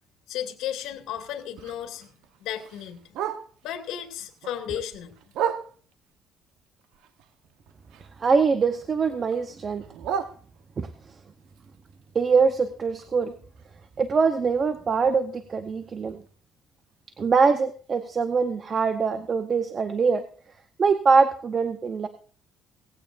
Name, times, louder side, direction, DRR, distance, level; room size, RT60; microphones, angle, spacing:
voice 1, 0.3-2.1 2.4-3.0 3.6-5.1, left 10 dB, 80° left, 5 dB, 2.2 m, -34 dB
Bark, 0.6-3.8 4.2-6.1 6.6-8.4 8.7-11.0 11.4-15.4 15.7-15.8 16.1-16.5 16.9-17.0 17.3-17.4 18.0-18.1, right 8 dB, 80° right, 1.1 m, -37 dB
voice 2, 8.2-9.8 10.8-10.9 12.1-13.3 14.0-16.2 17.2-20.3 20.8-22.1, right 5 dB, 30° right, 9 dB, 0.9 m, -23 dB
18.0 x 15.5 x 2.6 m, 0.44 s
cardioid pair, 150°, 0 cm